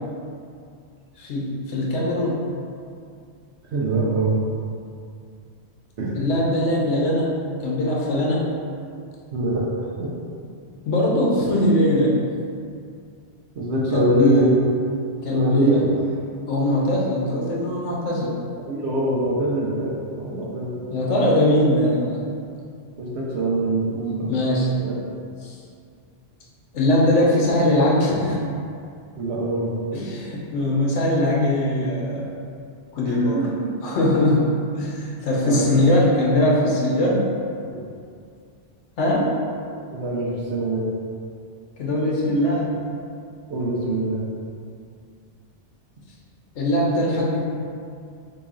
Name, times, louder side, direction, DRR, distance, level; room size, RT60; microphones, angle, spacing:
voice 1, 1.2-2.5 6.1-8.5 10.9-12.1 13.9-14.5 15.2-15.8 16.5-18.4 20.9-22.2 24.3-24.7 25.4-25.5 26.7-28.5 29.9-32.3 32.9-33.4 33.8-37.2 39.0-39.3 41.8-42.8 46.5-47.4, left 1 dB, 80° left, -3 dB, 1.0 m, -21 dB
voice 2, 3.7-4.3 6.0-6.2 9.3-10.1 13.5-14.5 15.3-15.9 18.6-20.7 23.0-24.3 24.8-25.1 29.2-29.7 33.0-33.7 35.4-35.9 37.6-37.9 39.9-40.9 43.5-44.3, right 1 dB, 75° right, -4 dB, 1.0 m, -24 dB
4.2 x 2.9 x 2.4 m, 2.3 s
omnidirectional pair, 1.2 m